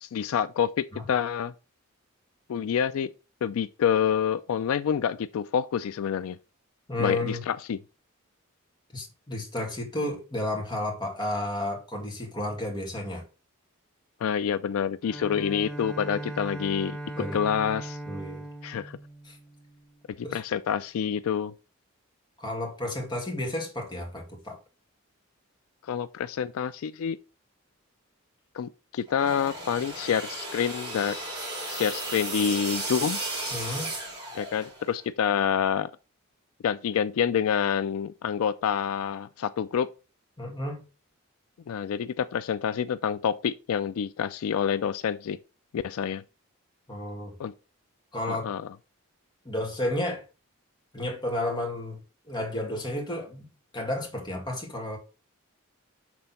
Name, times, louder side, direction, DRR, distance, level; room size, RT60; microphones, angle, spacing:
voice 1, 0.0-1.5 2.5-3.1 3.4-6.4 7.0-7.8 14.2-17.0 17.3-18.0 18.6-19.0 20.2-21.5 25.8-27.2 28.5-31.2 31.7-33.2 34.3-35.9 36.6-39.9 41.7-45.4 45.7-46.2 47.4-47.5 48.3-48.7, left 8 dB, 75° left, 0.3 m, -27 dB
voice 2, 6.9-7.4 8.9-13.2 17.2-17.4 18.1-18.5 19.3-19.4 20.2-20.4 22.4-24.6 33.5-33.9 40.4-40.8 46.9-47.3 48.1-48.5 49.4-50.2 50.9-52.0 52.2-53.5 53.7-55.0, left 1 dB, 20° left, 2.0 m, -32 dB
Bowed string instrument, 15.0-20.1, right 1 dB, 5° left, 0.7 m, -39 dB
sound 1, 29.1-34.9, right 2 dB, 20° right, 2.5 m, -35 dB
6.1 x 3.8 x 5.5 m
head